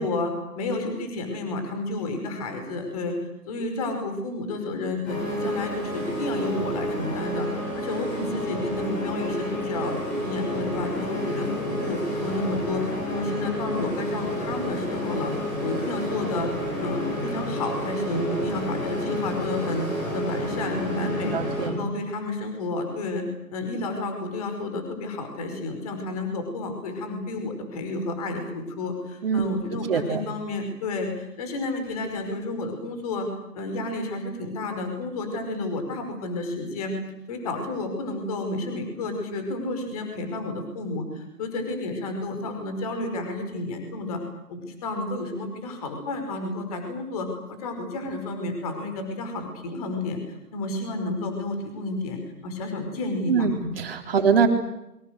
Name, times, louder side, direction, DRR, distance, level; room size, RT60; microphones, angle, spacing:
voice 1, 0.0-3.1 3.5-9.9 10.2-16.5 16.8-19.9 20.1-21.4 21.6-23.3 23.5-33.3 33.6-37.0 37.3-44.2 44.5-47.3 47.6-50.2 50.5-53.6, left 2 dB, 25° left, 5 dB, 5.4 m, -31 dB
sound 1, 5.1-21.7, equal, 5° left, 1.0 m, -30 dB
voice 2, 21.0-21.8 29.2-29.5 29.9-30.2 53.3-54.5, right 6 dB, 35° right, 4 dB, 4.0 m, -23 dB
28.5 x 25.0 x 6.6 m, 0.86 s
figure-of-eight pair, 160°, 48 cm